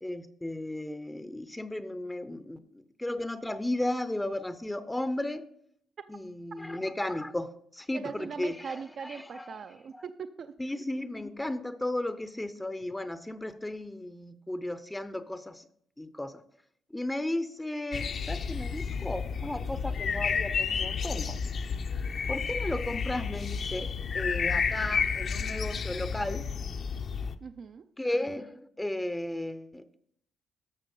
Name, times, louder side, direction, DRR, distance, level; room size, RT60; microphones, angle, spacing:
voice 1, 0.0-5.5 6.1-9.6 9.9-10.0 10.6-15.7 16.0-16.4 16.9-21.4 22.3-26.5 28.0-29.9, left 1 dB, 10° left, 13 dB, 0.6 m, -35 dB
voice 2, 7.9-10.5 27.4-27.8, right 6 dB, 55° right, 10 dB, 0.5 m, -40 dB
sound 1, 17.9-27.3, left 6 dB, 55° left, 0.7 m, -31 dB
12.0 x 6.6 x 5.3 m, 0.68 s
cardioid pair, 90°, 0 cm